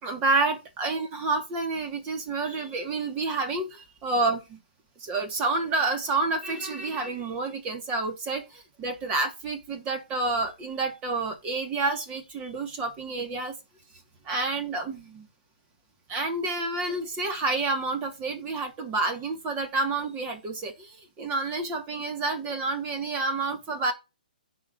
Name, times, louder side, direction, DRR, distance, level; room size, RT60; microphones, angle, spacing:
voice 1, 0.0-4.6 5.0-13.6 14.2-15.3 16.1-23.9, right 3 dB, 25° right, 2.7 m, -29 dB
15.0 x 5.2 x 3.0 m
hypercardioid pair, 140°, 5 cm